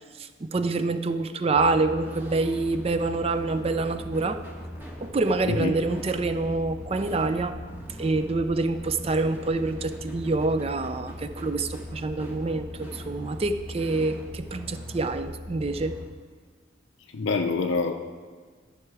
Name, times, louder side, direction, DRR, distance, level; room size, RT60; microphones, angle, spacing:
voice 1, 0.2-4.4 5.0-7.6 8.0-15.9, right 3 dB, 30° right, 10 dB, 0.4 m, -26 dB
sound 1, 1.6-16.0, left 1 dB, 10° right, 1.2 m, -40 dB
voice 2, 17.1-17.9, left 4 dB, 65° left, 4 dB, 0.5 m, -25 dB
13.0 x 5.8 x 4.7 m, 1.5 s
head